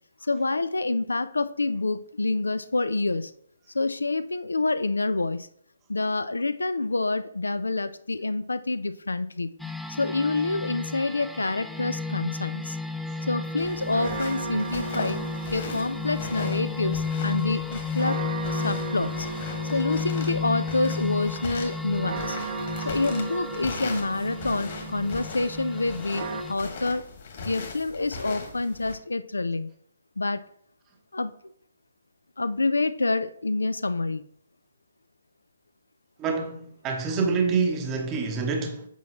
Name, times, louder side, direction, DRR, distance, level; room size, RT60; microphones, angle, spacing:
voice 1, 0.2-3.3 3.7-5.5 5.9-9.5 10.0-12.8 13.3-15.2 15.5-18.2 18.5-19.3 19.7-22.4 22.9-27.0 27.4-29.7 30.2-30.4 31.1-31.3 32.4-34.2, left 3 dB, 85° left, 0.4 m, -27 dB
sound 1, 9.6-26.5, left 5 dB, ahead, 0.4 m, -33 dB
sound 2, 13.2-26.4, right 4 dB, 50° right, 0.8 m, -37 dB
sound 3, 13.6-28.9, left 4 dB, 50° left, 1.8 m, -39 dB
voice 2, 36.2-38.9, right 4 dB, 20° right, 0.8 m, -26 dB
8.2 x 4.4 x 3.0 m
figure-of-eight pair, 140°, 0 cm